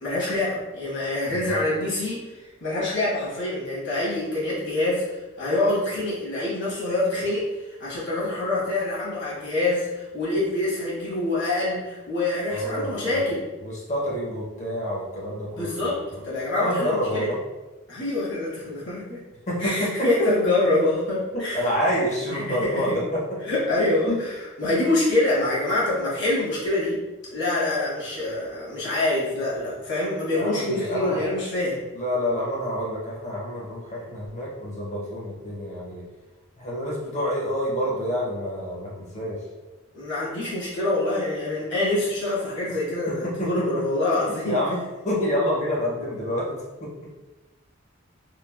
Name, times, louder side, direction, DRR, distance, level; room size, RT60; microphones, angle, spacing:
voice 1, 0.0-2.3 2.6-7.5 7.8-13.4 15.6-17.3 17.9-19.2 19.6-21.7 22.3-23.0 23.5-24.3 24.6-27.0 27.3-31.8 39.9-44.6, left 2 dB, 60° left, -8 dB, 1.2 m, -25 dB
voice 2, 1.3-1.6 12.5-13.3 13.6-16.0 16.5-17.4 19.5-20.3 21.3-23.2 24.1-24.2 30.3-31.2 31.9-36.0 36.6-39.4 43.1-43.8 44.4-44.8 45.0-47.1, equal, 35° left, -5 dB, 0.7 m, -28 dB
3.1 x 2.4 x 2.3 m, 1.1 s
head